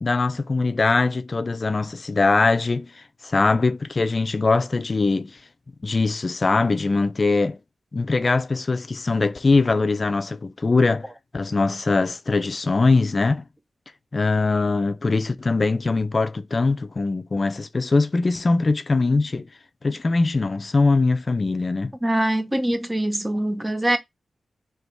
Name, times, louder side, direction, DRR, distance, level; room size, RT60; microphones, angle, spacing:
voice 1, 0.0-2.9 3.2-5.4 5.8-7.6 7.9-11.1 11.3-13.4 14.1-19.5 19.8-21.9, left 3 dB, 40° left, 0.5 m, -21 dB
voice 2, 22.0-24.0, right 1 dB, 15° right, 0.8 m, -23 dB
3.4 x 3.0 x 4.5 m
wide cardioid pair, 85°, 0 cm